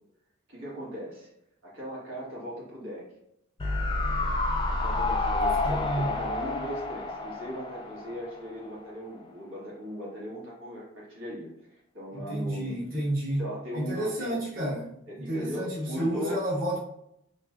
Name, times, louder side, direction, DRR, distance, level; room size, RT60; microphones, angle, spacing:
voice 1, 0.5-1.3 1.6-3.1 4.7-12.9 13.4-14.4 15.1-16.4, equal, 90° right, -6 dB, 1.4 m, -39 dB
sound 1, 3.6-8.8 9.1-9.2, left 2 dB, 25° left, 0.4 m, -29 dB
voice 2, 5.6-6.2 12.1-13.4 13.7-16.8, right 1 dB, 45° right, -8 dB, 1.2 m, -30 dB
3.1 x 3.1 x 2.4 m, 0.77 s
head